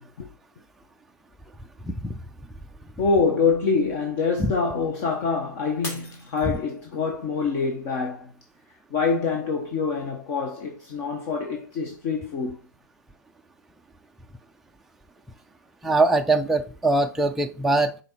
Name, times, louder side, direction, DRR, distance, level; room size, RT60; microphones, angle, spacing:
voice 1, 1.8-2.2 4.4-4.5 15.8-18.0, right 2 dB, ahead, 0.3 m, -22 dB
voice 2, 3.0-8.3 8.9-12.6, left 4 dB, 45° left, 1.3 m, -25 dB
Shatter, 5.8-7.1 7.7-8.1 8.7-8.8, left 2 dB, 25° left, 1.7 m, -39 dB
6.8 x 4.1 x 4.3 m
hypercardioid pair, 135°, 11 cm